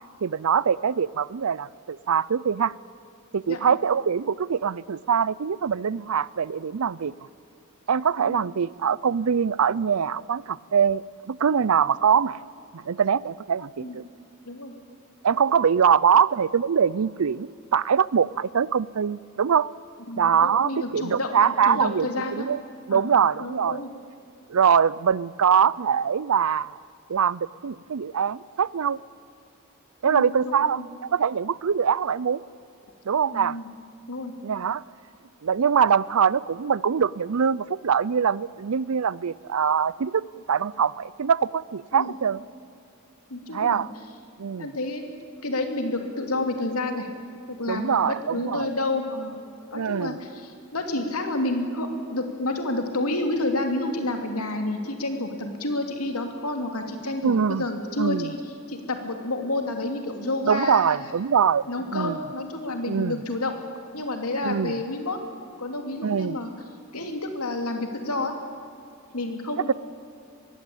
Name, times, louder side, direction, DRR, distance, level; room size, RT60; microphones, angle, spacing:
voice 1, 0.2-2.7 3.3-7.1 7.9-12.5 12.7-14.0 15.2-19.7 20.2-22.6 22.9-23.8 24.5-26.8 27.1-29.0 30.0-30.8 31.1-32.4 33.1-33.6 34.4-34.8 35.4-42.4 43.5-43.9 44.4-44.7 47.7-48.7 49.8-50.2 57.2-57.6 58.0-58.3 60.5-62.2 62.9-63.2 64.4-64.7 66.0-66.4, right 7 dB, 80° right, 21 dB, 0.5 m, -23 dB
voice 2, 20.1-22.5 22.9-23.9 30.0-30.9 33.3-33.7 34.1-34.4 41.9-42.1 43.3-43.9 44.6-45.1 45.4-47.1 47.5-49.4 49.7-58.4 58.7-61.0 61.7-63.5 63.9-65.2 65.6-66.5 66.9-68.3 69.1-69.7, left 2 dB, 90° left, 5 dB, 2.7 m, -29 dB
22.5 x 16.0 x 8.8 m, 2.6 s
head